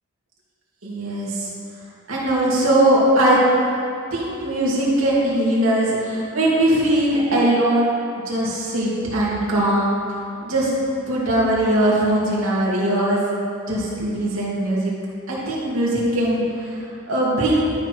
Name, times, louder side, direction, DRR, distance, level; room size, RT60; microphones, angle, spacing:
voice 1, 0.8-1.5 2.1-3.4 4.1-7.9 8.3-9.9 10.4-10.7 11.1-13.2 13.7-14.9 15.3-17.6, right 1 dB, 85° right, -6 dB, 2.5 m, -20 dB
12.5 x 6.0 x 4.6 m, 2.5 s
head